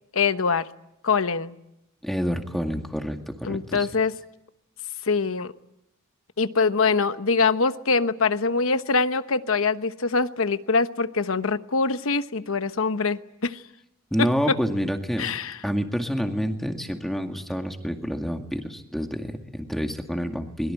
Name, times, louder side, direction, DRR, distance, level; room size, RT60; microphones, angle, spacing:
voice 1, 0.1-0.7 1.0-1.6 3.4-4.1 5.0-5.5 6.4-13.6 14.2-14.3 15.2-15.6, left 4 dB, 70° left, 11 dB, 1.0 m, -24 dB
voice 2, 2.0-3.9 14.1-15.3 15.6-20.7, equal, ahead, 4 dB, 2.1 m, -28 dB
23.0 x 22.0 x 9.0 m, 0.86 s
head